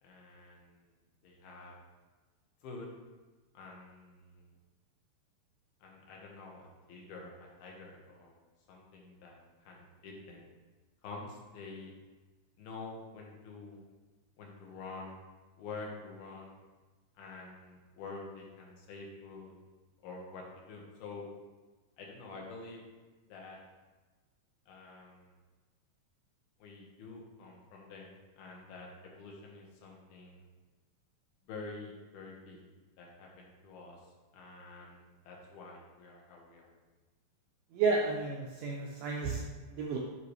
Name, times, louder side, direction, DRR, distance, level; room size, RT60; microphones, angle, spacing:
voice 1, 0.0-0.9 1.2-1.7 2.6-2.9 3.5-4.5 5.8-8.3 8.7-10.5 11.0-11.9 12.6-13.8 14.4-15.1 15.6-16.5 17.2-19.5 20.0-21.3 22.0-22.8 23.3-23.6 24.7-25.3 26.6-30.4 31.5-32.6 33.0-34.0 34.3-36.7, left 3 dB, 75° left, -2 dB, 2.8 m, -48 dB
voice 2, 37.7-40.0, right 4 dB, 85° right, -1 dB, 1.9 m, -32 dB
10.0 x 3.9 x 3.2 m, 1.3 s
omnidirectional pair, 4.5 m